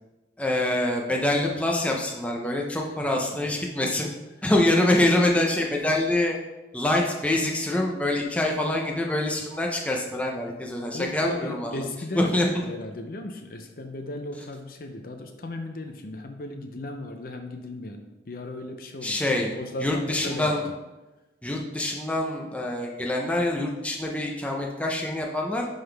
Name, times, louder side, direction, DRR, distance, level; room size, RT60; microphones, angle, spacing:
voice 1, 0.4-4.1 4.4-6.4 6.7-11.8 12.2-12.7 19.0-19.5 19.8-20.6 21.4-25.7, left 1 dB, 5° left, -1 dB, 0.7 m, -25 dB
voice 2, 10.9-19.2 19.5-20.7, left 2 dB, 50° left, 5 dB, 0.6 m, -36 dB
10.5 x 3.9 x 3.4 m, 1.1 s
head